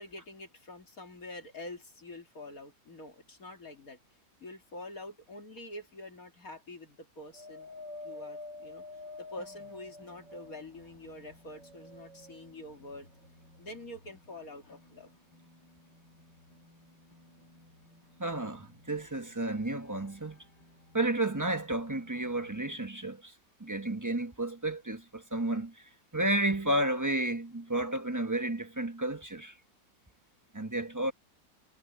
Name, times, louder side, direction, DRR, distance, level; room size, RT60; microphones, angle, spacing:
voice 1, 0.0-4.0 4.4-7.7 8.0-8.8 9.2-13.2 13.6-15.1 31.0-31.1, left 1 dB, 50° left, 2.9 m, -46 dB
Wind, 7.3-10.9 11.4-12.5 13.2-13.3, left 2 dB, 80° right, 2.5 m, -46 dB
sound 1, 9.3-22.6, left 1 dB, 65° left, 8.6 m, -60 dB
voice 2, 18.2-20.4 20.9-23.3 23.6-25.8 26.1-29.5 30.5-31.1, right 1 dB, 10° right, 1.0 m, -32 dB
omnidirectional pair, 2.0 m